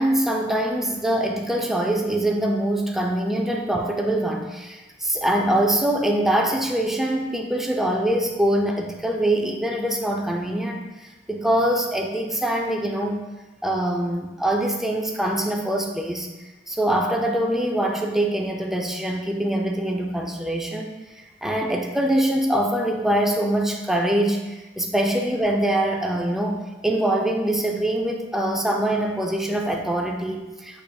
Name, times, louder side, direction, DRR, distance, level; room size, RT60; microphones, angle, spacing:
voice 1, 0.0-13.2 13.6-16.3 16.7-30.8, right 1 dB, ahead, 1 dB, 0.3 m, -24 dB
6.7 x 3.4 x 2.3 m, 1.2 s
head